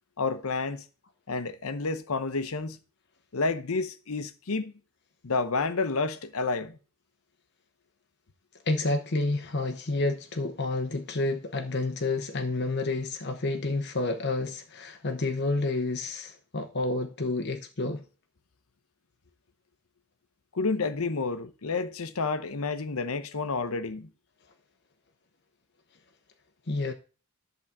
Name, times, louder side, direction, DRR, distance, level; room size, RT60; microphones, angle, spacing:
voice 1, 0.2-0.8 1.3-2.8 3.3-4.7 5.2-6.8 20.5-24.1, left 4 dB, 80° left, 0.9 m, -30 dB
voice 2, 8.7-18.0 26.7-26.9, left 2 dB, 50° left, 0.9 m, -29 dB
11.0 x 3.9 x 7.2 m
head